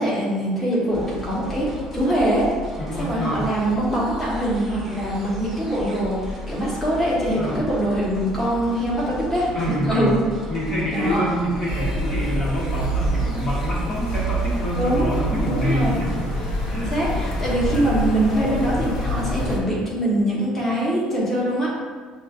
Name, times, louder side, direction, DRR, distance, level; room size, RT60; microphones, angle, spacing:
voice 1, 0.0-1.7 1.9-2.5 2.9-10.2 10.9-11.3 14.8-16.0 16.7-21.7, right 1 dB, 15° left, -7 dB, 1.3 m, -23 dB
sound 1, 0.9-19.6, equal, 10° right, 1.0 m, -35 dB
voice 2, 2.8-3.5 7.4-7.6 9.5-10.2 10.5-17.0, equal, 35° left, -6 dB, 1.2 m, -27 dB
sound 2, 11.7-19.6, right 1 dB, 85° left, 0.7 m, -26 dB
7.3 x 2.5 x 2.5 m, 1.5 s
cardioid pair, 145°, 2 cm